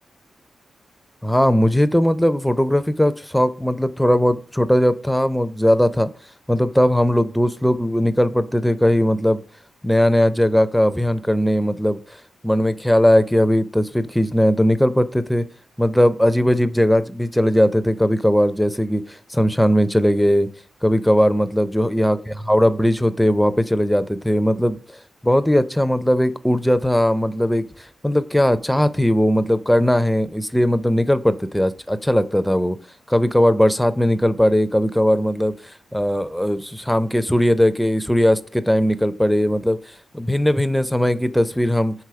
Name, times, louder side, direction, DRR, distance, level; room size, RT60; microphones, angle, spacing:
voice 1, 1.2-6.1 6.5-9.4 9.8-12.0 12.4-15.4 15.8-20.5 20.8-22.2 22.5-24.8 25.2-27.7 28.0-32.8 33.1-35.5 35.9-39.8 40.1-41.9, equal, 5° left, 12 dB, 0.4 m, -18 dB
4.8 x 3.7 x 5.6 m, 0.41 s
cardioid pair, 85°, 0 cm